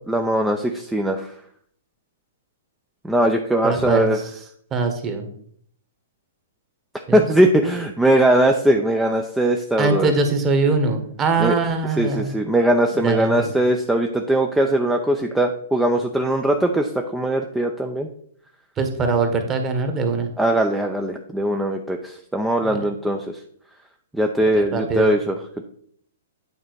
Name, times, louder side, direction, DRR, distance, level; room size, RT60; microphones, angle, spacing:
voice 1, 0.1-1.3 3.0-4.2 7.1-10.1 11.4-11.6 12.0-18.1 20.4-23.3 24.1-25.4, right 1 dB, 5° right, 3 dB, 0.6 m, -20 dB
voice 2, 3.6-4.1 4.7-5.3 7.1-7.2 9.8-12.3 12.9-13.5 18.8-20.3 22.6-22.8 24.5-25.1, right 4 dB, 25° right, 5 dB, 1.5 m, -22 dB
8.8 x 4.1 x 4.7 m, 0.62 s
hypercardioid pair, 120°, 0 cm